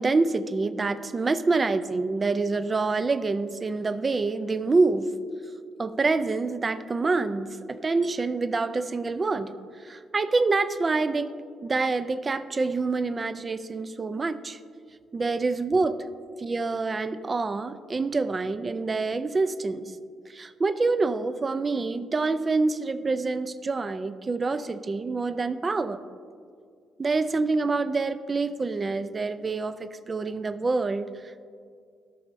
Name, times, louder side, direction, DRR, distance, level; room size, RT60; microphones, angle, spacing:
voice 1, 0.0-5.1 5.8-9.5 9.8-11.3 11.6-14.6 15.1-16.1 16.4-19.9 20.3-26.0 27.0-31.5, right 3 dB, 30° right, 13 dB, 0.4 m, -26 dB
13.5 x 6.3 x 2.6 m, 2.2 s
cardioid pair, 90°, 0 cm